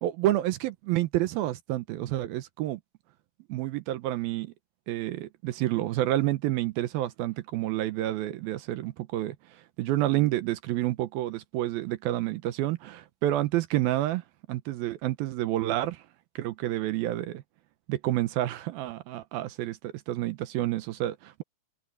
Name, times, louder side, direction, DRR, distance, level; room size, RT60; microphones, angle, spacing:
voice 1, 0.0-2.8 3.5-4.5 4.9-9.4 9.8-14.2 14.5-16.0 16.4-17.4 17.9-21.4, right 15 dB, 75° right, 2.5 m, -29 dB
open air
omnidirectional pair, 4.6 m